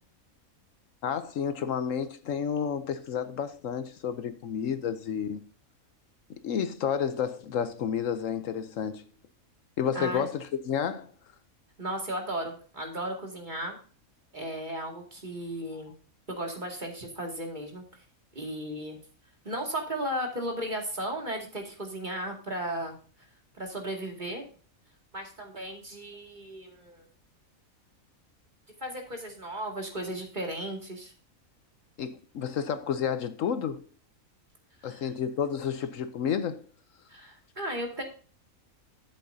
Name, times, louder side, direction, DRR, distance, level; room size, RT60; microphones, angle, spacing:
voice 1, 1.0-5.4 6.4-9.0 9.8-11.1 32.0-33.9 34.8-36.6, left 7 dB, 70° left, 1.1 m, -30 dB
voice 2, 9.9-10.3 11.8-13.8 14.3-15.9 16.3-17.8 18.3-19.0 19.4-23.0 23.6-24.5 25.1-27.1 28.8-31.1 34.8-35.1 37.1-38.0, right 1 dB, 35° right, 2.4 m, -35 dB
12.0 x 8.0 x 2.7 m
omnidirectional pair, 1.5 m